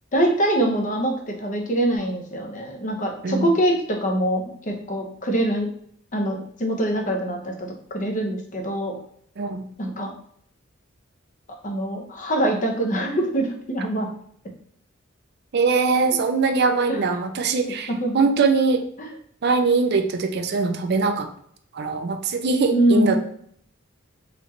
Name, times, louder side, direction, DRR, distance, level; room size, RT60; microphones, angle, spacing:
voice 1, 0.1-5.7 6.1-8.9 9.8-10.1 11.6-14.1 16.9-17.0 18.0-18.3 19.0-19.1 22.7-23.2, right 1 dB, 40° left, 2 dB, 0.7 m, -24 dB
voice 2, 15.5-18.8 19.4-21.3 21.7-23.2, right 4 dB, 55° right, 7 dB, 0.5 m, -22 dB
3.9 x 3.1 x 3.2 m, 0.65 s
head